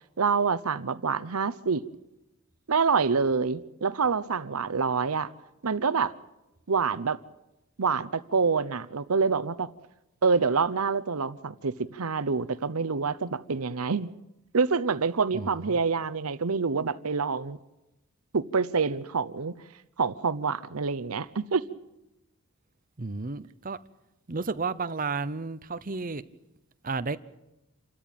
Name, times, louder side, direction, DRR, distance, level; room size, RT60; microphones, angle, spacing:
voice 1, 0.2-1.8 2.7-5.3 5.6-6.1 6.7-7.2 7.8-9.7 10.2-14.1 14.5-17.6 18.3-19.5 20.0-21.6, right 5 dB, 85° right, 0.8 m, -26 dB
voice 2, 15.3-15.8 23.0-23.8 24.3-26.2 26.8-27.2, right 4 dB, 40° right, 0.8 m, -32 dB
28.0 x 13.5 x 9.1 m
head